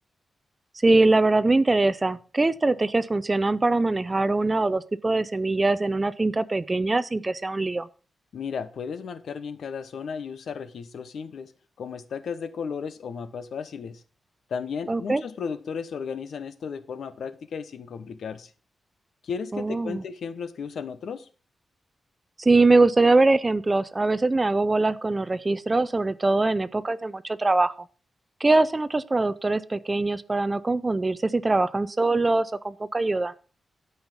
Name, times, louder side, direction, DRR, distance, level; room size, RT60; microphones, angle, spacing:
voice 1, 0.8-7.9 14.9-15.2 19.5-20.0 22.4-27.7 28.4-33.3, right 2 dB, 20° right, 16 dB, 0.4 m, -22 dB
voice 2, 8.3-11.5 11.8-14.0 14.5-18.5 19.2-21.3, left 6 dB, 70° left, 13 dB, 1.0 m, -34 dB
12.5 x 5.6 x 6.0 m, 0.37 s
wide cardioid pair, 175°, 0 cm